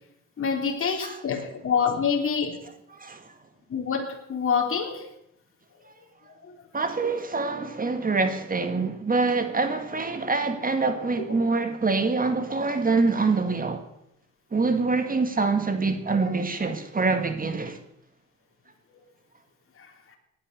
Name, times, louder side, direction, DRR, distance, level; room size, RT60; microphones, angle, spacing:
voice 1, 0.4-2.6 3.7-5.0 6.3-6.5, left 6 dB, 45° left, 3.5 m, -26 dB
voice 2, 6.7-13.8 14.5-17.8, right 3 dB, 30° right, 2.1 m, -25 dB
18.5 x 10.5 x 6.9 m
cardioid pair, 90°, 30 cm